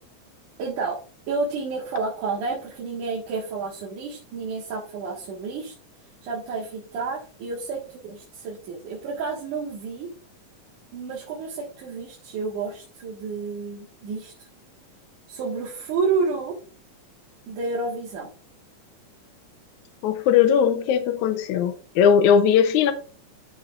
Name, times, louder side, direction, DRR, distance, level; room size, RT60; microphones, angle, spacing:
voice 1, 0.6-1.0 1.3-5.7 6.2-10.1 10.9-14.3 15.3-16.6 17.5-18.3, right 4 dB, 85° right, 3.2 m, -30 dB
voice 2, 20.0-22.9, left 8 dB, 75° left, 2.2 m, -19 dB
12.5 x 5.6 x 2.5 m
omnidirectional pair, 3.5 m